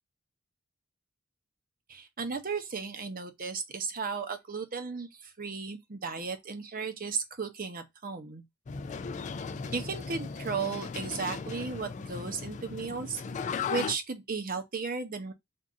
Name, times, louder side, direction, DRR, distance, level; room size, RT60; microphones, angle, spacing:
voice 1, 1.9-8.4 9.7-13.2 13.7-15.3, right 5 dB, 45° right, 0.8 m, -35 dB
sound 1, 8.7-13.9, left 5 dB, 35° left, 0.3 m, -37 dB
3.7 x 2.6 x 3.8 m
head